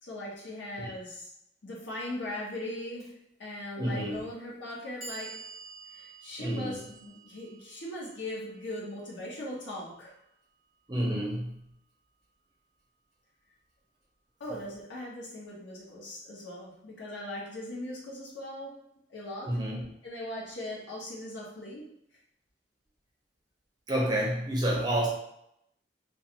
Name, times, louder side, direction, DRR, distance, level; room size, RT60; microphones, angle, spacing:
voice 1, 0.0-1.3 1.6-5.4 5.9-10.1 14.4-18.8 19.1-19.6 20.0-22.0, left 1 dB, 85° left, -4 dB, 0.8 m, -39 dB
Clock, 3.0-3.1 4.1-4.2 4.7-10.7, right 4 dB, ahead, 1.1 m, -50 dB
voice 2, 3.8-4.2 6.4-6.8 10.9-11.7 19.4-19.9 23.9-25.1, right 1 dB, 25° right, -3 dB, 0.6 m, -29 dB
2.4 x 2.3 x 2.8 m, 0.77 s
head